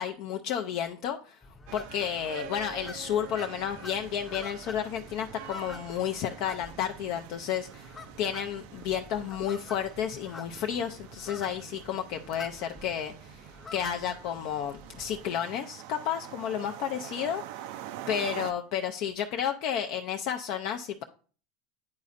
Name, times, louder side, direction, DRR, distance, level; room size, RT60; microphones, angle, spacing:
voice 1, 0.0-1.4 1.7-17.7 18.1-21.0, left 9 dB, 60° left, 4 dB, 0.4 m, -32 dB
sound 1, 1.4-15.3, left 2 dB, 20° left, 0.6 m, -48 dB
sound 2, 1.7-18.5, right 12 dB, 70° right, 0.4 m, -46 dB
9.4 x 4.1 x 2.5 m, 0.41 s
hypercardioid pair, 95°, 0 cm